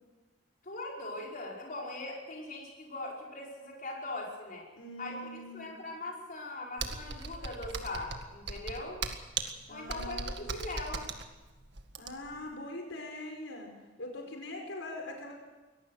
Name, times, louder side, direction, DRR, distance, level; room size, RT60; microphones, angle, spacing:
voice 1, 0.6-4.7 5.0-9.0 9.7-11.1, left 2 dB, 45° left, -2 dB, 5.4 m, -40 dB
voice 2, 4.7-5.7 9.7-10.4 12.0-13.7 14.0-15.3, left 1 dB, 85° left, 2 dB, 5.0 m, -42 dB
Computer keyboard, 6.8-12.4, right 4 dB, 65° right, 1.9 m, -38 dB
24.0 x 18.5 x 6.5 m, 1.2 s
head